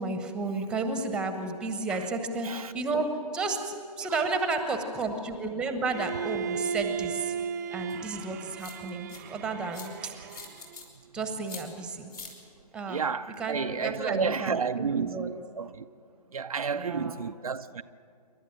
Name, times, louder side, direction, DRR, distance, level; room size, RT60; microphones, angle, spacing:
voice 1, 0.0-7.3 7.7-10.1 11.1-12.1 12.7-13.0 13.4-15.3 16.7-17.2, right 3 dB, 5° right, 1.1 m, -32 dB
Bowed string instrument, 5.9-10.8, right 7 dB, 25° right, 0.7 m, -35 dB
sound 1, 7.9-8.0 8.6-9.2 9.7-9.9 10.3-10.8 11.5-11.6 12.1-12.3, left 4 dB, 65° left, 5.4 m, -43 dB
voice 2, 12.9-15.9 16.3-17.8, right 5 dB, 60° right, 0.6 m, -31 dB
28.0 x 12.5 x 8.9 m
figure-of-eight pair, 135°, 21 cm